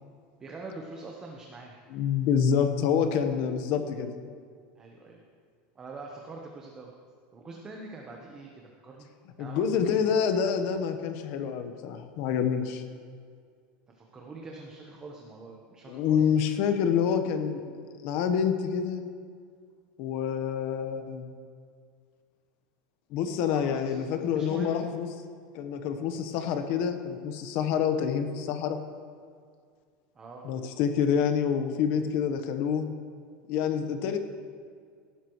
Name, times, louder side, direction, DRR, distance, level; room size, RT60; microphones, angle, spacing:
voice 1, 0.4-1.7 4.8-5.2 5.7-6.9 7.3-9.1 9.4-9.9 13.9-16.4 23.5-24.0 24.3-24.8 30.1-30.5, right 3 dB, 15° right, 0 dB, 1.0 m, -44 dB
voice 2, 1.9-4.1 9.4-12.8 15.9-17.7 18.0-19.1 20.0-21.3 23.1-25.1 25.5-28.8 30.4-32.9 33.5-34.2, left 7 dB, 50° left, 7 dB, 1.0 m, -27 dB
17.0 x 12.5 x 3.1 m, 2.1 s
supercardioid pair, 170°, 4 cm